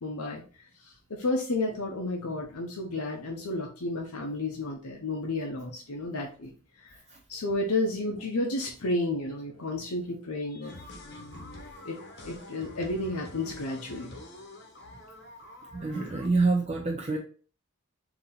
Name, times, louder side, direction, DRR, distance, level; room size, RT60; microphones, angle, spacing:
voice 1, 0.0-6.5 6.8-7.0 7.3-10.7 11.8-14.2, left 2 dB, 90° left, 0 dB, 0.7 m, -32 dB
sound 1, 10.6-16.3, left 1 dB, 50° left, 0.9 m, -46 dB
voice 2, 15.7-17.2, right 3 dB, 30° right, 0 dB, 0.5 m, -26 dB
3.9 x 2.9 x 4.2 m, 0.39 s
head